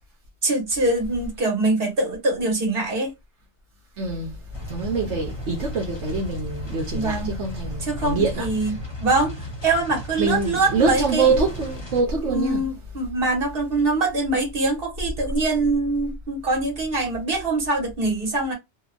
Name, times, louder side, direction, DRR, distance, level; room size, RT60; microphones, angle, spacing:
voice 1, 0.4-3.1 6.9-7.3 7.8-9.4 9.6-11.3 12.3-18.5, right 2 dB, 55° right, 1.4 m, -23 dB
voice 2, 4.0-4.3 4.7-8.5 10.2-12.7, right 4 dB, 80° right, 1.1 m, -24 dB
sound 1, 4.5-12.0, left 1 dB, 25° left, 0.8 m, -36 dB
2.9 x 2.2 x 2.4 m
omnidirectional pair, 1.2 m